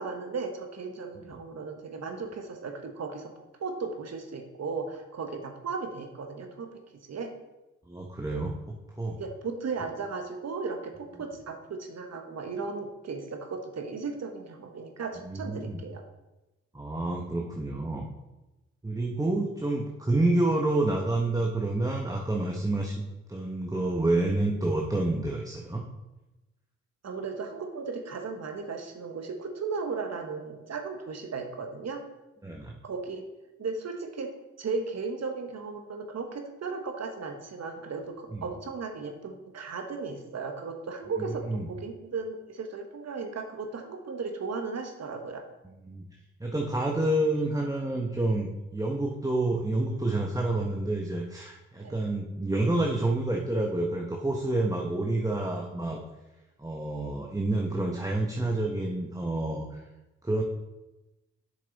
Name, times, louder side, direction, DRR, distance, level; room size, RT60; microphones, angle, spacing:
voice 1, 0.0-3.3 3.6-7.3 9.2-16.0 27.0-32.0 32.8-33.3 33.6-45.4 51.8-52.0, right 4 dB, 55° right, 5 dB, 1.4 m, -36 dB
voice 2, 7.9-8.5 8.9-9.2 15.2-15.8 16.7-18.1 18.8-23.0 23.3-25.8 32.4-32.8 38.3-38.4 41.5-41.7 45.8-46.0 46.4-56.0 56.6-59.8 60.2-60.4, right 2 dB, 10° right, 0 dB, 1.2 m, -28 dB
7.4 x 6.4 x 4.1 m, 1.0 s
supercardioid pair, 45°, 31 cm